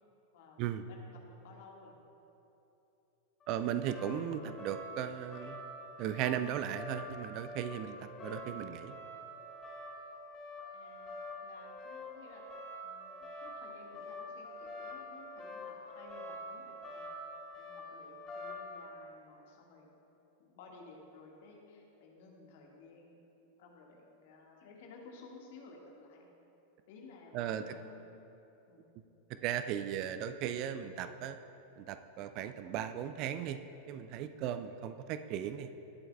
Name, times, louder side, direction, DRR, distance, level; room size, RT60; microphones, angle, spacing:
voice 1, 0.6-0.9 3.5-5.6 6.0-8.9 27.3-27.7 29.4-31.4 31.8-33.6 33.9-35.7, right 10 dB, 40° right, 11 dB, 0.4 m, -37 dB
voice 2, 1.4-1.9 10.7-11.1 11.4-12.4 12.8-17.3 17.6-19.9 20.4-23.2 23.6-26.2 26.9-28.2 28.7-28.8, left 3 dB, 50° left, -1 dB, 1.7 m, -56 dB
sound 1, 3.4-18.8, left 1 dB, 25° left, 2.0 m, -46 dB
20.0 x 7.7 x 2.3 m, 3.0 s
figure-of-eight pair, 90°, 0 cm